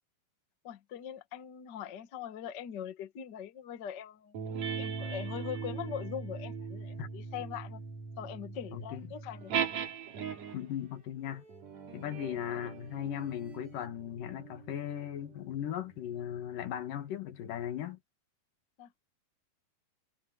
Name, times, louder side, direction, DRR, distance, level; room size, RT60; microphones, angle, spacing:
voice 1, 0.6-4.4 4.8-7.8 8.2-9.6 12.5-12.8 18.8-19.1, left 9 dB, 60° left, 1.1 m, -42 dB
sound 1, 4.3-10.7 11.5-16.4, right 6 dB, 55° right, 3.5 m, -40 dB
sound 2, 8.6-13.9, right 1 dB, 80° right, 9.9 m, -63 dB
voice 2, 8.7-9.1 10.5-11.4 11.9-18.0, left 10 dB, 75° left, 3.2 m, -37 dB
omnidirectional pair, 3.9 m